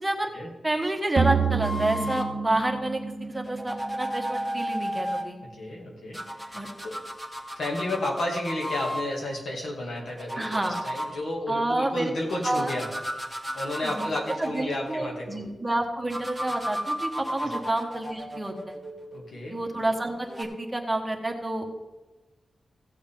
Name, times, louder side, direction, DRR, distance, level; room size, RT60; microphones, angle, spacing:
voice 1, 0.6-3.0 3.3-5.4 6.5-6.7 10.3-10.8 11.5-12.1 12.4-12.7 13.8-14.1 14.4-18.7 19.5-21.6, right 1 dB, 15° right, 3 dB, 1.3 m, -29 dB
sound 1, 1.2-4.4, right 5 dB, 55° right, 0.6 m, -28 dB
sound 2, 1.6-2.3 3.4-5.3 6.1-9.1 10.0-11.1 12.2-15.3 16.1-19.4 20.2-20.4, equal, 5° left, 1.6 m, -34 dB
voice 2, 5.5-7.0 7.6-12.9 13.5-15.4 17.4-17.6 19.1-19.6, left 1 dB, 75° left, -1 dB, 2.4 m, -32 dB
15.5 x 7.2 x 3.8 m, 1.2 s
wide cardioid pair, 105°, 0 cm